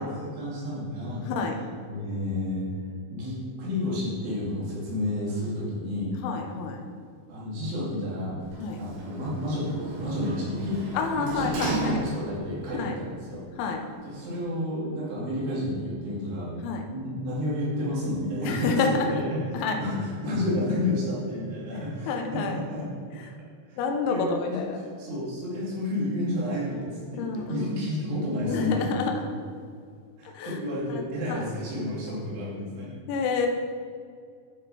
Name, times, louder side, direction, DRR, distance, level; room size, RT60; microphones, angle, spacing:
voice 1, 0.0-1.2 1.9-2.7 3.1-6.2 7.3-8.4 8.8-11.5 11.8-13.4 14.0-16.6 16.9-22.9 23.7-23.8 24.1-24.6 25.0-28.9 30.2-32.9, left 1 dB, 90° right, -7 dB, 5.3 m, -31 dB
voice 2, 6.2-6.8 8.6-8.8 10.9-12.2 12.7-13.0 13.6-13.8 16.6-16.8 18.4-19.1 19.5-19.8 22.1-22.6 23.8-24.8 27.2-27.9 28.5-29.2 30.3-30.6 30.9-31.4 33.1-33.5, left 4 dB, 85° left, 3 dB, 3.2 m, -28 dB
Sliding door, 8.4-12.5 13.0-13.1, right 1 dB, 60° right, 3.3 m, -35 dB
12.0 x 6.5 x 4.2 m, 2.2 s
omnidirectional pair, 5.3 m